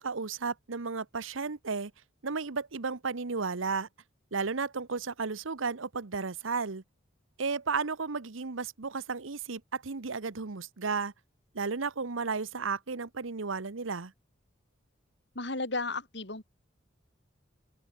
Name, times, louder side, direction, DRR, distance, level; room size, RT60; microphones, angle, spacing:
voice 1, 0.0-1.9 2.2-3.9 4.3-6.8 7.4-11.1 11.5-14.1, right 4 dB, 85° right, 1.0 m, -33 dB
voice 2, 15.3-16.4, left 3 dB, 60° left, 3.4 m, -34 dB
open air
head